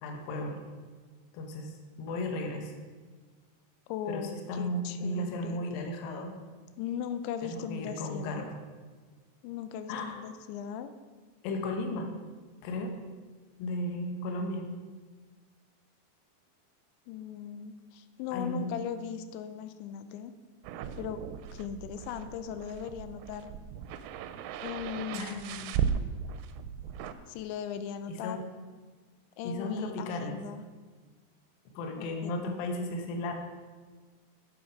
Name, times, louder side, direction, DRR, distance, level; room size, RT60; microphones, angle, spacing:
voice 1, 0.0-0.6 1.3-2.7 4.1-6.4 7.4-8.6 9.9-10.2 11.4-12.1 12.6-13.0 13.6-14.7 18.3-18.7 25.1-25.4 28.1-28.5 29.4-30.4 31.7-33.3, left 1 dB, 70° left, 3 dB, 2.4 m, -35 dB
voice 2, 3.9-5.6 6.8-8.5 9.4-10.9 17.1-20.3 21.0-21.2 21.5-23.5 24.6-25.8 27.3-28.4 29.4-30.6 32.0-32.3, left 8 dB, 90° left, 10 dB, 2.9 m, -38 dB
sound 1, 20.6-27.1, right 8 dB, 85° right, 2.7 m, -36 dB
8.9 x 8.0 x 5.1 m, 1.4 s
omnidirectional pair, 5.1 m